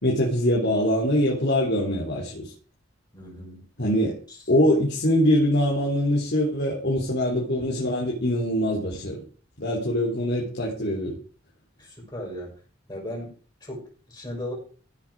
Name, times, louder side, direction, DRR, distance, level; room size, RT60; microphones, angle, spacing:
voice 1, 0.0-2.5 3.8-4.2 4.5-9.2 9.6-11.2, equal, 60° left, -3 dB, 3.4 m, -23 dB
voice 2, 3.1-3.6 4.3-4.4 11.8-12.5 12.9-13.3 13.6-14.5, left 1 dB, 20° left, -3 dB, 6.1 m, -36 dB
15.5 x 7.6 x 4.8 m, 0.40 s
head